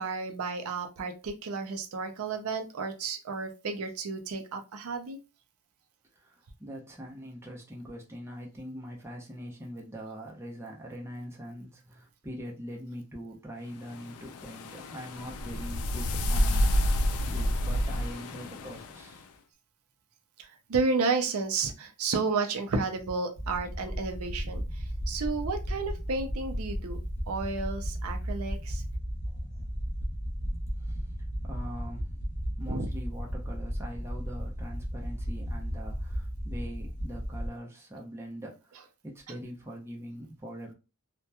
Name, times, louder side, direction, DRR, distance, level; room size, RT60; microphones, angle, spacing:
voice 1, 0.0-5.2 20.4-27.0 27.3-28.8 32.7-32.9, right 4 dB, 80° right, 5 dB, 0.5 m, -32 dB
voice 2, 6.2-19.3 29.3-29.4 30.8-31.0 31.4-40.7, equal, 10° right, -2 dB, 0.5 m, -43 dB
sound 1, 13.9-19.2, equal, 90° left, 0.4 m, -29 dB
sound 2, 23.3-37.5, equal, 30° left, 0.7 m, -34 dB
2.8 x 2.1 x 2.2 m, 0.29 s
head